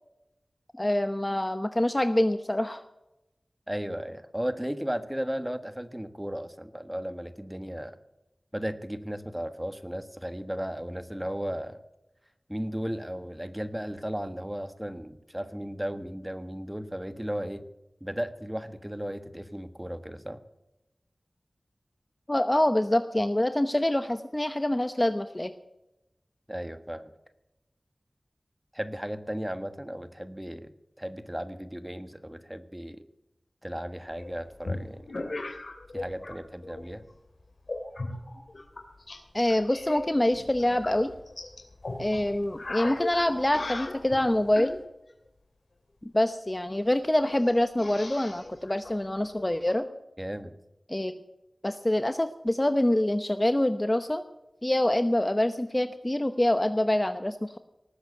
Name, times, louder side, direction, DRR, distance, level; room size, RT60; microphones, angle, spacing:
voice 1, 0.7-2.8 22.3-25.5 39.3-41.1 42.0-44.8 46.1-49.9 50.9-51.2 51.6-54.2 54.6-57.6, left 1 dB, 25° left, 9 dB, 0.9 m, -25 dB
voice 2, 3.7-8.0 8.5-11.8 12.5-17.6 18.0-20.4 26.5-27.1 28.7-30.7 31.0-33.0 33.6-35.0 35.9-37.0 50.2-50.5, equal, 10° right, 10 dB, 1.4 m, -35 dB
sound 1, 34.2-36.4 36.6-37.1 37.7-39.2 39.5-44.8 46.4-46.5 46.7-46.8 47.2-49.7, left 2 dB, 70° left, 2.9 m, -38 dB
19.0 x 8.1 x 7.9 m, 0.92 s
wide cardioid pair, 45°, 0 cm